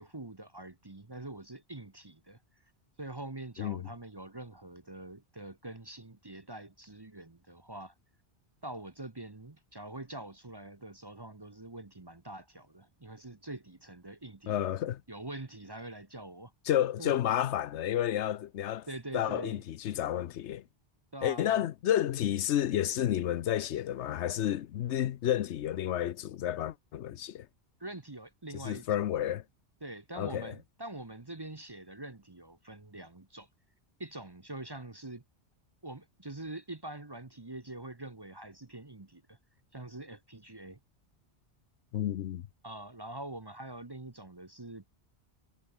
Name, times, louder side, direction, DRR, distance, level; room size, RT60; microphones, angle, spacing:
voice 1, 0.0-2.4 3.0-7.9 8.6-14.6 15.1-16.5 17.0-17.1 18.9-19.6 21.1-21.7 27.8-29.0 29.8-33.5 34.0-35.2 35.8-39.4 39.7-40.8 42.6-44.9, right 2 dB, 25° right, 1.0 m, -44 dB
voice 2, 14.5-15.0 16.7-18.9 19.1-20.6 21.2-27.5 28.6-29.4 30.2-30.5 41.9-42.5, left 11 dB, 85° left, 1.0 m, -31 dB
omnidirectional pair, 1.1 m